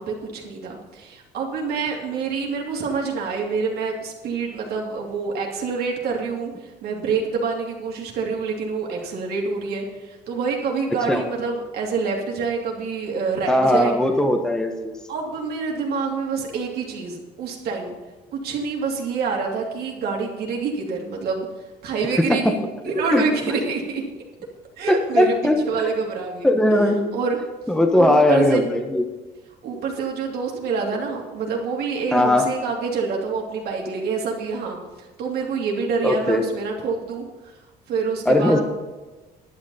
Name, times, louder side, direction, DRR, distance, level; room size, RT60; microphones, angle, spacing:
voice 1, 0.0-6.5 6.8-13.9 15.1-17.9 18.3-21.5 21.8-22.6 22.8-24.0 24.8-25.3 25.6-27.4 27.9-28.6 29.6-34.8 35.2-37.2 37.9-38.6, right 5 dB, 70° right, 0 dB, 2.9 m, -26 dB
voice 2, 13.5-14.9 22.2-22.4 23.1-23.5 24.9-25.6 26.4-27.0 27.7-29.1 32.1-32.5 36.0-36.4 38.2-38.6, left 1 dB, 5° left, 4 dB, 1.2 m, -19 dB
11.0 x 9.5 x 5.6 m, 1.2 s
cardioid pair, 110°, 17 cm